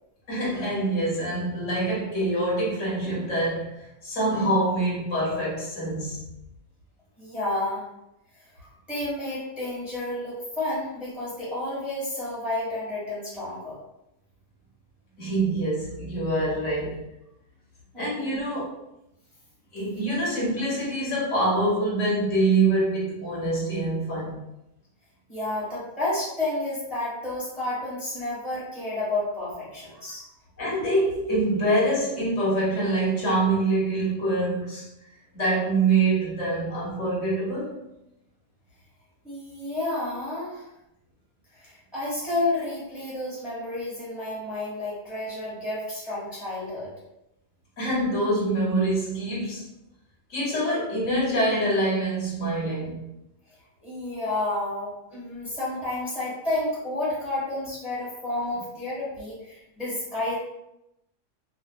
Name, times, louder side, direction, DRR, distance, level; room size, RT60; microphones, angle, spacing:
voice 1, 0.3-6.3 15.2-17.1 18.0-18.7 19.7-24.4 30.6-34.8 35.3-37.8 47.8-49.6 50.3-53.0, right 2 dB, 75° left, -6 dB, 1.3 m, -25 dB
voice 2, 7.2-7.9 8.6-13.8 18.2-18.4 25.3-30.2 39.2-40.7 41.5-46.9 53.8-60.3, left 2 dB, ahead, -9 dB, 1.2 m, -31 dB
2.8 x 2.2 x 2.3 m, 0.88 s
omnidirectional pair, 1.3 m